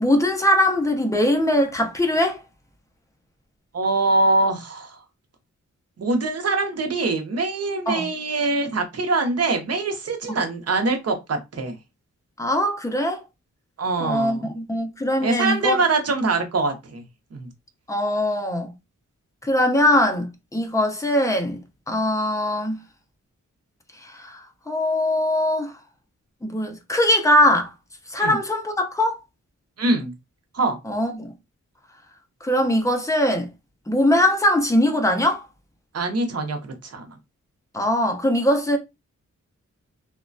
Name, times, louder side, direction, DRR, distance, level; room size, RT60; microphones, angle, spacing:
voice 1, 0.0-2.4 7.9-8.1 12.4-13.2 14.0-15.8 17.9-18.7 19.4-21.6 21.9-22.8 24.0-24.4 24.7-25.7 26.4-27.7 28.1-29.2 30.9-31.3 32.4-33.5 33.9-35.4 37.7-38.8, left 1 dB, 10° left, 0.4 m, -21 dB
voice 2, 3.7-5.0 6.0-11.7 13.8-14.5 15.2-17.0 17.3-17.5 28.2-28.4 29.8-30.1 30.5-30.8 35.9-37.1, right 3 dB, 55° right, 0.6 m, -23 dB
3.0 x 2.2 x 2.4 m
wide cardioid pair, 170°, 30 cm